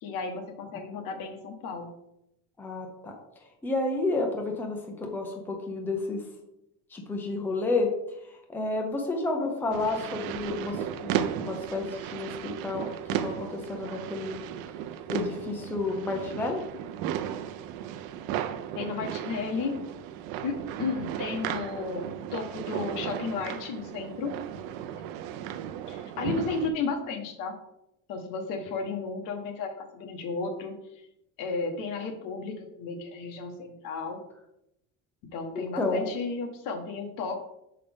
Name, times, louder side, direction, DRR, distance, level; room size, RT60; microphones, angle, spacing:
voice 1, 0.0-1.9 18.7-19.8 20.4-24.3 25.9-27.5 28.1-30.8 31.4-34.2 35.3-37.4, left 4 dB, 70° left, 4 dB, 1.3 m, -33 dB
voice 2, 2.6-3.1 3.6-6.2 6.9-7.9 8.5-10.8 11.0-14.4 15.1-16.6 35.5-36.1, left 2 dB, 5° left, 2 dB, 0.6 m, -30 dB
sound 1, 9.7-26.7, right 10 dB, 90° right, 0.6 m, -35 dB
6.4 x 5.6 x 3.5 m, 0.83 s
cardioid pair, 175°, 35 cm